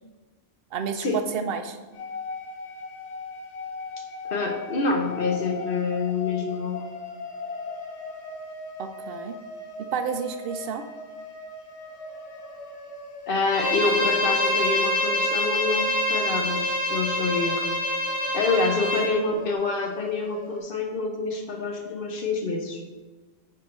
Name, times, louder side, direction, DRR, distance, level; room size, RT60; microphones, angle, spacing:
voice 1, 0.7-1.8 8.8-9.4 9.9-10.8, right 6 dB, 65° right, 8 dB, 0.8 m, -30 dB
sound 1, 1.9-20.6, left 3 dB, 85° left, 1.1 m, -39 dB
voice 2, 4.2-6.9 13.3-17.7 18.3-22.8, left 4 dB, 55° left, 2 dB, 1.0 m, -27 dB
Bowed string instrument, 13.5-19.1, left 1 dB, 30° left, 1.2 m, -25 dB
9.5 x 4.4 x 3.1 m, 1.3 s
omnidirectional pair, 1.2 m